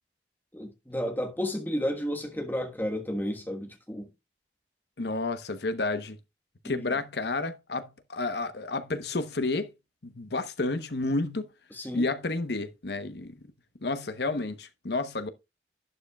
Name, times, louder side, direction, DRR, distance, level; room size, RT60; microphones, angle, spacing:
voice 1, 0.5-4.1 6.6-6.9 11.7-12.1, equal, 10° left, 1.3 m, -32 dB
voice 2, 5.0-6.2 6.6-9.7 10.0-11.5 11.9-13.3 13.8-15.3, left 3 dB, 70° left, 1.0 m, -30 dB
11.0 x 9.8 x 2.3 m
head